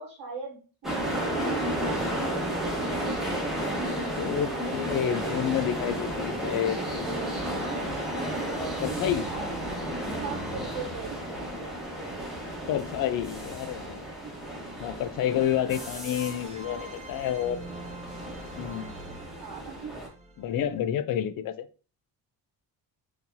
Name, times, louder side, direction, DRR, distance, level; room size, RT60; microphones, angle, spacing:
voice 1, 0.0-2.3 10.2-11.2 14.2-14.3 19.4-19.9, right 5 dB, 50° right, -1 dB, 1.1 m, -40 dB
sound 1, 0.8-20.1, right 1 dB, ahead, 1.2 m, -33 dB
voice 2, 4.2-7.4 8.8-9.3 12.7-14.0 14.6-17.6 18.6-19.0 20.4-21.7, left 10 dB, 55° left, 13 dB, 0.5 m, -29 dB
sound 2, 7.1-12.8 15.7-20.8, right 1 dB, 15° right, 0.5 m, -46 dB
4.3 x 2.8 x 2.7 m, 0.36 s
cardioid pair, 90°, 43 cm